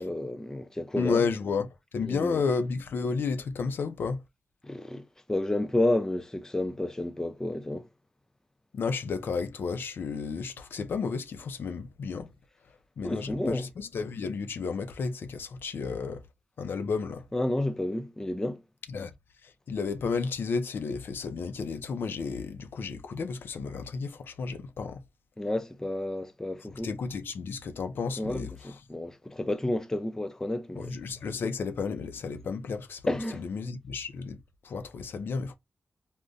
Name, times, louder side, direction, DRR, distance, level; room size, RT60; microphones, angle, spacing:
voice 1, 0.0-1.2 2.0-2.4 4.6-7.9 13.0-13.7 17.3-18.6 25.4-26.9 28.2-31.0 33.1-33.4, left 1 dB, 15° left, 0.4 m, -31 dB
voice 2, 1.0-4.2 8.7-12.3 13.0-16.2 16.6-17.3 18.9-19.1 19.4-25.0 26.8-28.5 30.8-33.0 33.3-35.5, left 5 dB, 75° left, 0.4 m, -32 dB
3.6 x 2.1 x 2.5 m
cardioid pair, 70°, 4 cm